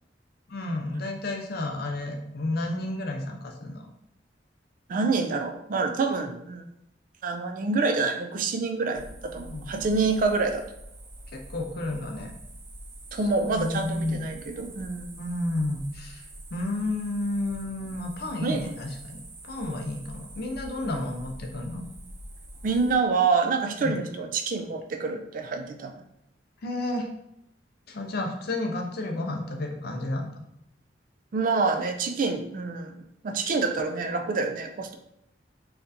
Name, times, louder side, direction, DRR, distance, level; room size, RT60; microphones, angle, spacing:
voice 1, 0.5-3.8 9.5-9.7 11.3-12.4 13.1-14.3 15.2-16.3 16.5-19.2 19.4-21.8 23.8-24.0 26.6-27.1 27.9-30.4, left 2 dB, 60° left, 2 dB, 0.6 m, -31 dB
voice 2, 4.9-6.6 7.2-10.6 13.1-15.2 18.4-18.7 20.8-21.0 22.6-25.9 31.3-33.0 33.2-35.0, right 4 dB, 50° right, 6 dB, 0.4 m, -27 dB
sound 1, 8.9-22.9, right 1 dB, 85° right, 0.9 m, -45 dB
4.3 x 2.5 x 2.6 m, 0.80 s
head